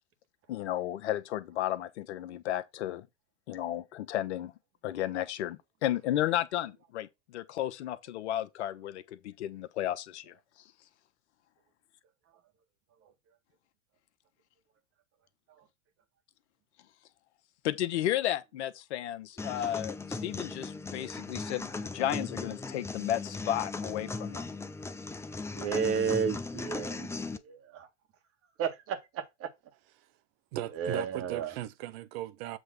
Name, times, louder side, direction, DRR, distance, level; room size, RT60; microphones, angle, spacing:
voice 1, 0.5-3.1 3.5-4.5 4.8-10.3 17.6-24.5, left 12 dB, 65° left, 1.1 m, -33 dB
sound 1, 19.4-27.4, left 3 dB, 5° left, 0.6 m, -38 dB
voice 2, 25.6-27.9 28.6-29.5 30.7-31.6, right 6 dB, 40° right, 1.7 m, -32 dB
voice 3, 30.5-32.6, right 14 dB, 55° right, 1.1 m, -38 dB
7.8 x 3.2 x 5.9 m
hypercardioid pair, 95°, 36 cm